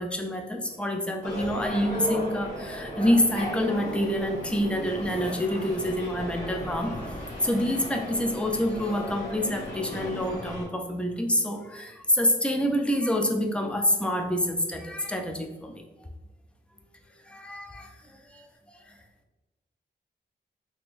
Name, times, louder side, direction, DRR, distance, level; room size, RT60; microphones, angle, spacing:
voice 1, 0.0-7.1 7.4-16.1 17.3-18.5, equal, 5° left, 3 dB, 0.3 m, -27 dB
sound 1, 1.2-10.6, left 1 dB, 35° left, 1.4 m, -36 dB
3.5 x 3.3 x 2.5 m, 1.1 s
wide cardioid pair, 155°, 19 cm